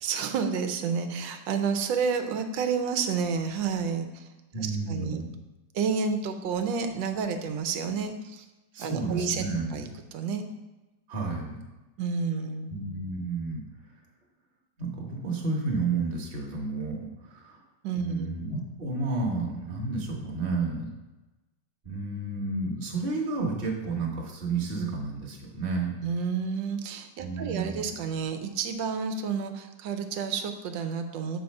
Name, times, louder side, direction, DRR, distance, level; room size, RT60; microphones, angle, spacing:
voice 1, 0.0-4.3 4.6-5.2 5.7-8.4 8.8-9.4 9.7-10.5 12.0-12.7 17.8-18.4 26.0-31.4, right 5 dB, 90° right, 7 dB, 1.4 m, -30 dB
voice 2, 4.5-5.3 8.7-9.8 11.1-11.6 12.7-13.6 14.8-17.6 18.0-20.9 21.8-26.0 27.2-27.9, right 3 dB, 35° right, -1 dB, 1.1 m, -31 dB
7.0 x 4.1 x 5.3 m, 1.1 s
omnidirectional pair, 2.0 m